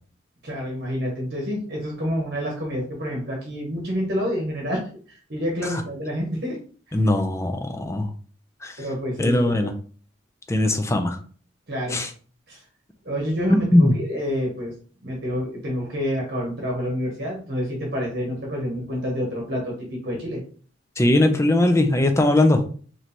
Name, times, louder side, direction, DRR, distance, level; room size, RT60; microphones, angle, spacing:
voice 1, 0.4-4.8 5.1-6.6 8.8-9.7 11.7-12.0 12.5-12.6 13.0-14.7 15.0-20.4, equal, 50° right, -2 dB, 1.0 m, -28 dB
voice 2, 6.9-8.1 8.6-8.8 9.2-9.7 10.5-11.2 11.9-12.1 13.5-13.9 21.0-22.6, left 1 dB, 15° left, 6 dB, 0.4 m, -19 dB
3.1 x 2.8 x 4.2 m, 0.43 s
head